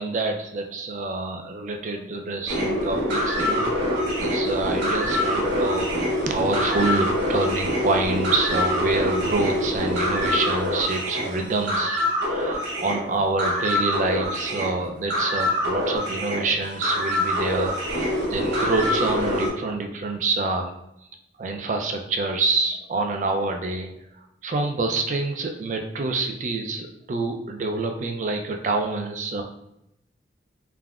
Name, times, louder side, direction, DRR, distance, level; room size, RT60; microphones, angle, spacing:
voice 1, 0.0-3.7 4.2-20.7 21.4-23.9 24.4-29.4, right 3 dB, 40° right, 4 dB, 0.3 m, -27 dB
sound 1, 2.5-19.5, left 1 dB, 75° right, 0.9 m, -25 dB
3.4 x 2.0 x 2.3 m, 0.81 s
head